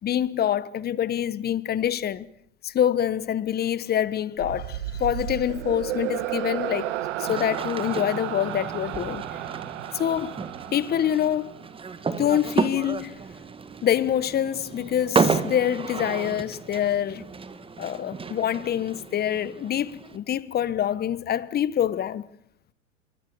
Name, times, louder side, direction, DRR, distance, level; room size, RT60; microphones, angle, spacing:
voice 1, 0.0-2.3 2.6-9.2 9.9-10.4 10.7-11.5 12.2-13.1 13.8-17.3 17.8-22.3, left 10 dB, 25° left, 1.3 m, -26 dB
sound 1, 4.4-11.8, right 13 dB, 65° right, 1.8 m, -33 dB
sound 2, 7.3-20.2, right 4 dB, 15° right, 1.7 m, -32 dB
25.5 x 23.0 x 7.0 m
hypercardioid pair, 105°, 39 cm